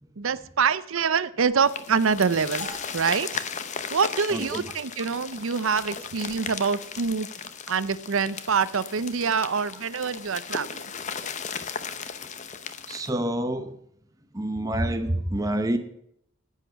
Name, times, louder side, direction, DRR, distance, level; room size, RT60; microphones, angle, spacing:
voice 1, 0.2-2.7 2.9-3.3 3.9-7.3 7.7-10.8, right 5 dB, 75° right, 16 dB, 0.6 m, -25 dB
sound 1, 1.6-13.1, left 6 dB, 35° left, 0.7 m, -36 dB
sound 2, 2.6-5.0, equal, 55° left, 5.5 m, -45 dB
voice 2, 4.3-4.7 10.5-10.6 12.9-13.8 14.3-15.8, right 1 dB, 15° right, 7 dB, 0.7 m, -27 dB
10.0 x 8.3 x 6.8 m, 0.71 s
head